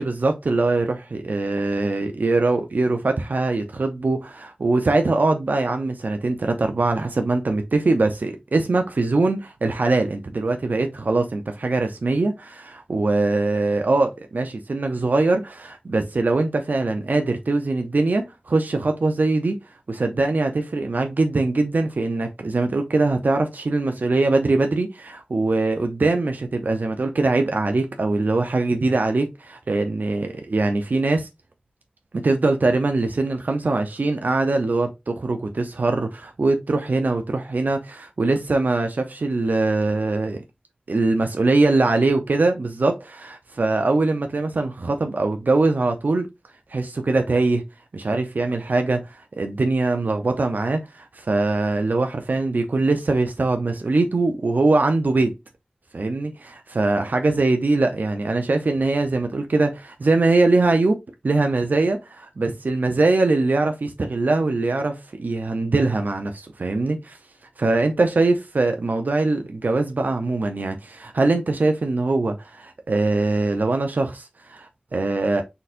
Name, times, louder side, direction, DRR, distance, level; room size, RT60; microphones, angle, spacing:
voice 1, 0.0-19.5 19.9-31.3 32.1-40.4 40.9-46.3 46.7-47.6 47.9-55.3 55.9-67.2 67.6-75.4, right 3 dB, 90° right, 0.6 m, -22 dB
4.2 x 3.9 x 2.5 m
wide cardioid pair, 45°, 3 cm